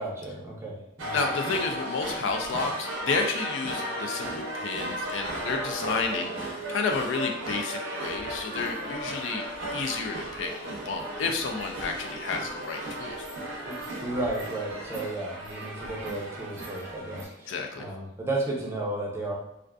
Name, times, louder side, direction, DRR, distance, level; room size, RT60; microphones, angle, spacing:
voice 1, 0.0-1.2 13.7-13.8 14.0-19.4, right 2 dB, 15° right, -4 dB, 0.5 m, -33 dB
sound 1, 1.0-17.2, right 1 dB, 80° right, 0.6 m, -35 dB
voice 2, 1.1-9.4 9.7-13.3 17.5-17.9, left 4 dB, 70° left, 3 dB, 0.3 m, -31 dB
2.4 x 2.3 x 2.2 m, 0.80 s
head